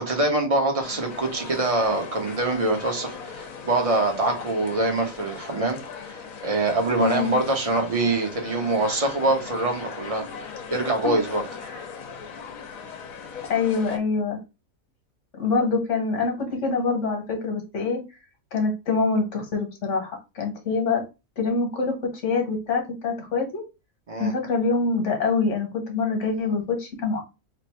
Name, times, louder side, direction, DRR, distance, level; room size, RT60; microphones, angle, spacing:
voice 1, 0.0-11.4 24.1-24.3, right 2 dB, 30° right, 0.8 m, -24 dB
sound 1, 0.8-14.0, left 6 dB, 75° left, 1.2 m, -39 dB
voice 2, 7.0-7.3 10.7-11.1 11.7-11.8 13.4-14.4 15.4-18.0 18.5-21.0 21.4-23.6 24.2-27.2, left 4 dB, 60° left, 1.5 m, -25 dB
3.2 x 2.6 x 4.4 m
omnidirectional pair, 1.5 m